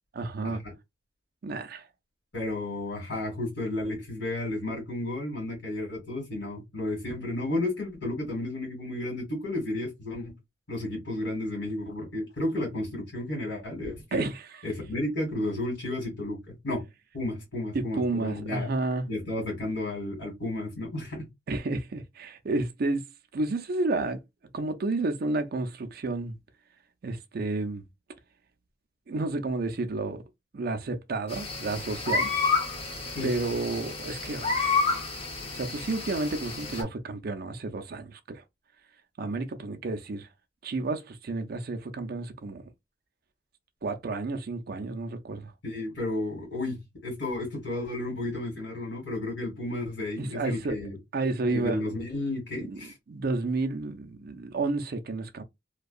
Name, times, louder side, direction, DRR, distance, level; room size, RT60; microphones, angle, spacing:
voice 1, 0.1-0.6 1.4-1.8 14.1-14.4 17.7-19.1 21.5-24.2 24.5-26.4 27.0-27.8 29.1-30.2 30.5-32.3 33.2-34.8 35.5-38.4 39.2-40.3 40.6-42.6 43.8-45.5 50.2-50.8 51.1-51.8 52.6-52.8 53.1-55.4, right 3 dB, 55° right, 0.4 m, -31 dB
voice 2, 2.3-10.3 10.7-14.2 14.6-16.8 17.1-18.7 19.1-21.3 33.1-33.3 45.6-51.0 51.5-53.0, left 2 dB, 75° left, 1.7 m, -32 dB
sound 1, 31.3-36.8, left 4 dB, 30° left, 0.7 m, -30 dB
2.6 x 2.2 x 2.3 m
head